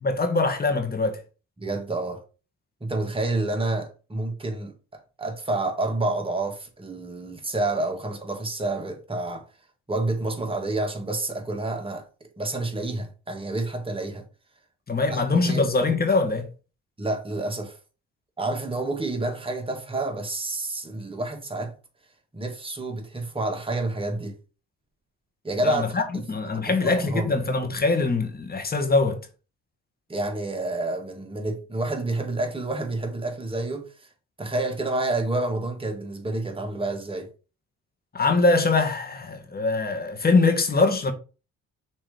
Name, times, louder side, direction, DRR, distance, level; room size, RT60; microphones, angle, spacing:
voice 1, 0.0-1.2 14.9-16.5 25.6-29.2 38.1-41.1, left 3 dB, 30° left, 1.4 m, -23 dB
voice 2, 1.6-2.2 2.8-9.4 9.9-12.0 12.4-14.3 15.1-15.7 17.0-17.8 18.4-21.7 22.3-24.4 25.4-26.2 26.5-27.3 30.1-34.1 34.4-37.3, right 2 dB, 20° right, 1.7 m, -29 dB
6.0 x 3.1 x 5.0 m
cardioid pair, 90°, 30 cm